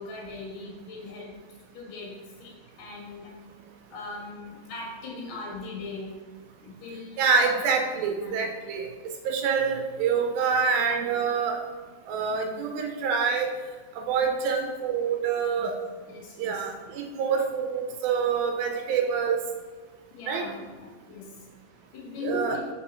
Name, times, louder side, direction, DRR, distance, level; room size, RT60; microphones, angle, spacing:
voice 1, 0.0-1.3 1.7-3.4 3.9-6.1 6.6-7.5 8.2-8.5 15.6-15.7 16.1-16.7 18.7-18.8 20.1-21.5 21.9-22.7, left 3 dB, 65° left, -2 dB, 3.0 m, -39 dB
voice 2, 7.2-8.9 9.3-11.6 12.1-13.5 14.0-15.7 16.4-19.4 20.3-20.5 22.2-22.6, right 5 dB, 80° right, 3 dB, 2.6 m, -26 dB
5.9 x 4.8 x 4.3 m, 1.5 s
omnidirectional pair, 4.2 m